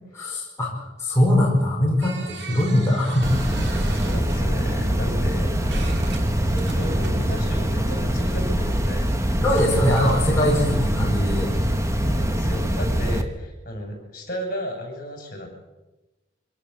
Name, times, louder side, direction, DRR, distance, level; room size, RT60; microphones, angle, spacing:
voice 1, 0.1-3.3 9.4-11.5, left 1 dB, 15° left, -3 dB, 5.1 m, -21 dB
sound 1, 2.0-8.6 9.4-10.4, right 3 dB, 65° right, 3.0 m, -39 dB
sound 2, 3.2-13.2, equal, 15° right, 1.6 m, -23 dB
voice 2, 3.9-5.6 6.5-9.2 12.0-15.5, equal, 50° left, 2 dB, 7.5 m, -34 dB
25.5 x 17.0 x 7.4 m, 1.1 s
head